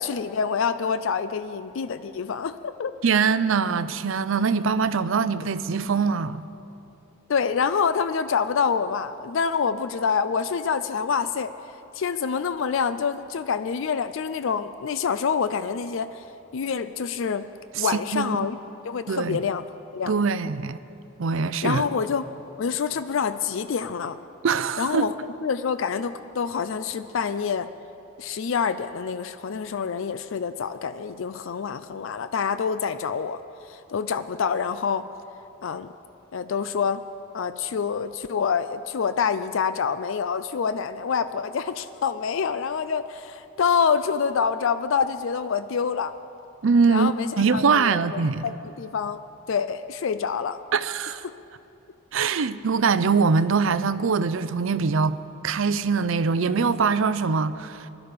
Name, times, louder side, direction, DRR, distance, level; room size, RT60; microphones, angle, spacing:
voice 1, 0.0-2.9 7.3-11.5 11.9-16.2 16.5-17.5 17.8-18.6 18.8-19.7 19.9-20.1 21.6-22.3 22.6-24.2 24.8-25.1 25.4-27.7 28.2-33.4 33.7-35.1 35.6-35.9 36.3-37.0 37.3-46.1 46.9-49.2 49.5-50.6 51.2-51.3, left 6 dB, 65° left, 0.4 m, -26 dB
voice 2, 3.0-6.5 17.8-18.4 19.1-19.4 20.0-20.8 21.2-21.8 24.4-25.1 46.6-48.4 50.7-51.2 52.1-57.9, right 5 dB, 70° right, 0.5 m, -23 dB
20.0 x 12.0 x 5.1 m
head